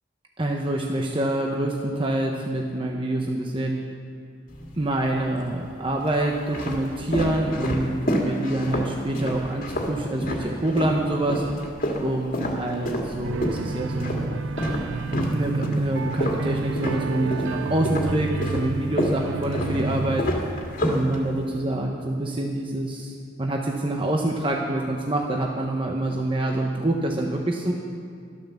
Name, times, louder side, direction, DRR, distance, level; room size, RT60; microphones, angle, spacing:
voice 1, 0.4-3.8 4.8-11.4 12.0-14.3 15.3-20.3 20.8-23.1 23.4-27.7, right 1 dB, 25° right, 0 dB, 0.9 m, -26 dB
sound 1, 4.5-5.2 5.9-11.0 11.3-17.6 17.9-21.6, equal, 45° left, 2.0 m, -28 dB
sound 2, 13.2-20.2, right 3 dB, 85° right, 0.4 m, -31 dB
12.5 x 12.0 x 7.1 m, 2.3 s
head